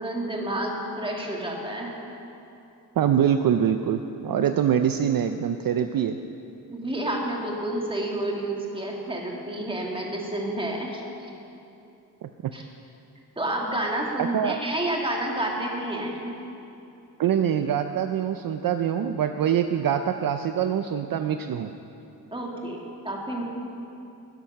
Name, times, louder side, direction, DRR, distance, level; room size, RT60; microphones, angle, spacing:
voice 1, 0.0-2.0 6.7-11.0 12.5-12.6 13.4-16.3 22.3-22.8 23.0-23.5, right 1 dB, 15° right, -1 dB, 1.8 m, -29 dB
voice 2, 3.0-6.2 12.2-12.5 14.3-14.6 17.2-21.7, right 9 dB, 60° right, 8 dB, 0.5 m, -24 dB
12.0 x 10.0 x 6.5 m, 2.8 s
wide cardioid pair, 135°, 40 cm